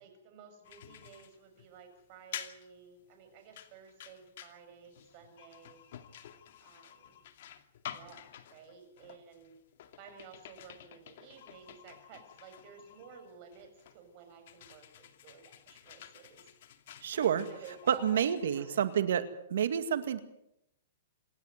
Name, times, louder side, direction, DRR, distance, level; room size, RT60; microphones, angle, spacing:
voice 1, 0.0-5.8 6.6-7.2 7.9-9.6 10.0-16.4 17.1-17.2 17.5-18.8, right 6 dB, 40° right, 6 dB, 7.0 m, -54 dB
sound 1, 0.6-19.1, left 10 dB, 55° left, 2.4 m, -50 dB
voice 2, 17.0-17.5 17.9-20.2, right 8 dB, 75° right, 11 dB, 2.0 m, -29 dB
27.5 x 12.0 x 9.6 m, 0.78 s
hypercardioid pair, 155°, 0 cm